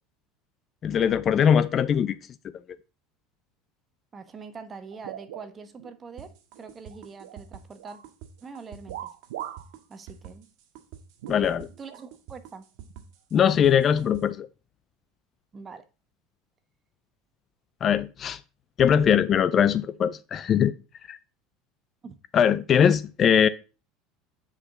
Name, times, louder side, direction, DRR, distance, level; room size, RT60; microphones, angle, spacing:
voice 1, 0.8-2.2 11.3-11.7 13.3-14.5 17.8-18.4 18.8-20.7 21.1-21.2 22.3-23.5, left 8 dB, 40° left, 0.5 m, -21 dB
voice 2, 4.1-8.0 8.4-9.1 9.9-10.5 11.8-12.6 15.5-15.8 22.0-22.2, right 5 dB, 30° right, 1.2 m, -43 dB
sound 1, 4.9-6.0 6.4-7.4 7.8-8.1 8.9-9.7 10.1-10.2 11.2-12.0 12.9-13.0 13.9-14.1, right 12 dB, 85° right, 0.6 m, -40 dB
sound 2, 6.2-14.2, right 9 dB, 65° right, 1.8 m, -47 dB
8.9 x 4.9 x 3.9 m
supercardioid pair, 100°, 0 cm